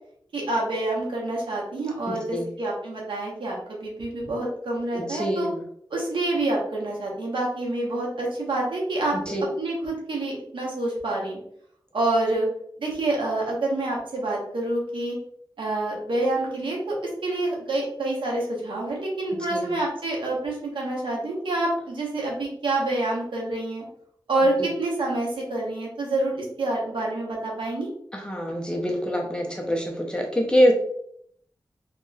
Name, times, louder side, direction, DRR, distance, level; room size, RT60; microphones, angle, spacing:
voice 1, 0.3-5.5 5.9-9.2 9.6-11.4 11.9-12.5 12.8-15.2 15.6-23.9 24.3-27.9, right 2 dB, 80° right, -2 dB, 1.0 m, -27 dB
voice 2, 2.1-2.5 4.9-5.4 9.3-9.4 19.5-19.6 28.1-30.7, equal, 10° left, 0 dB, 0.7 m, -24 dB
3.0 x 2.9 x 2.3 m, 0.68 s
wide cardioid pair, 75°, 8 cm